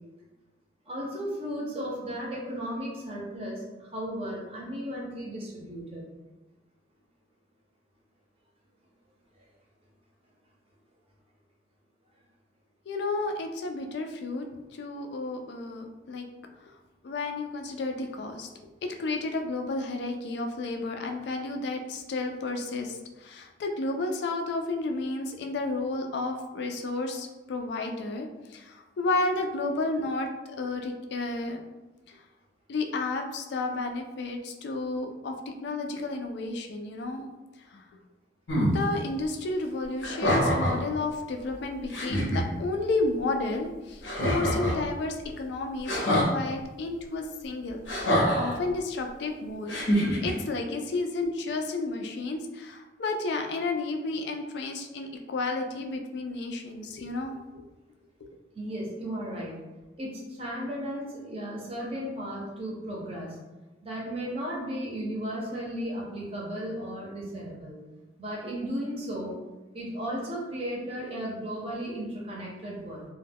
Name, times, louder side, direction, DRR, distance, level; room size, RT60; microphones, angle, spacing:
voice 1, 0.9-6.0 58.6-59.6 60.0-63.4 63.8-67.8 68.2-69.4 69.7-73.1, equal, 30° right, -4 dB, 0.6 m, -35 dB
voice 2, 12.9-14.5 14.7-16.2 16.7-16.8 17.0-18.5 18.8-30.3 30.6-31.6 32.1-32.2 32.7-35.4 35.6-37.3 37.7-37.8 38.7-49.8 50.2-57.6, left 3 dB, 65° left, 4 dB, 0.3 m, -32 dB
sound 1, 38.5-38.8 40.0-40.8 41.5-41.6 41.9-42.4 44.0-44.8 45.9-46.3 47.9-48.5 49.7-50.3, equal, 85° left, 0.7 m, -25 dB
2.1 x 2.1 x 3.3 m, 1.1 s
head